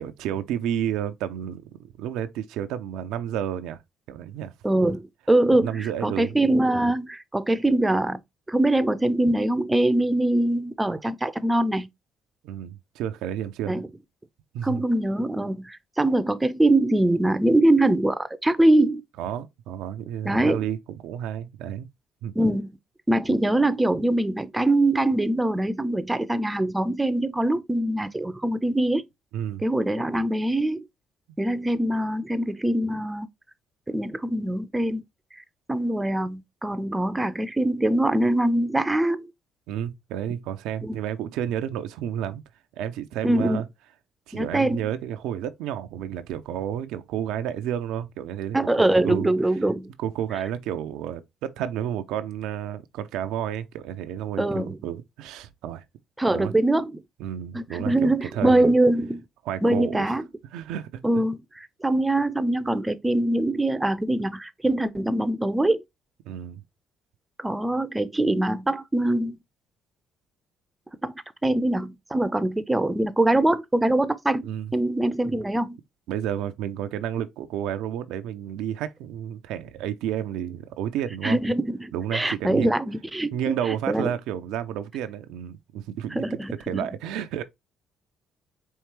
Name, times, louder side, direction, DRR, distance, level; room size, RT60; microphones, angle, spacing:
voice 1, 0.0-3.8 4.1-4.5 5.6-6.3 12.4-13.8 14.5-14.8 19.2-21.9 22.2-22.3 29.3-29.6 39.7-42.4 42.8-43.7 44.3-48.6 49.0-49.3 50.0-55.8 56.3-56.5 57.2-58.7 59.5-60.2 60.5-60.9 66.2-66.6 74.4-74.7 76.1-81.4 81.9-82.7 83.3-86.4 86.7-87.4, right 10 dB, 75° right, 0.4 m, -31 dB
voice 2, 4.6-5.0 5.3-8.2 8.5-11.9 13.7-13.9 14.6-19.0 20.2-20.6 22.4-22.7 23.1-29.0 29.6-30.8 31.4-33.3 33.9-35.0 35.7-39.3 40.8-41.0 43.2-43.6 44.3-44.8 48.5-49.9 54.4-54.8 56.2-57.0 57.5-59.2 59.6-60.2 61.0-65.8 67.4-69.4 71.0-71.1 71.4-74.4 74.7-75.8 81.2-83.6 83.9-84.1 86.1-86.9, right 1 dB, 15° right, 0.6 m, -23 dB
4.5 x 3.1 x 3.0 m
hypercardioid pair, 50°, 0 cm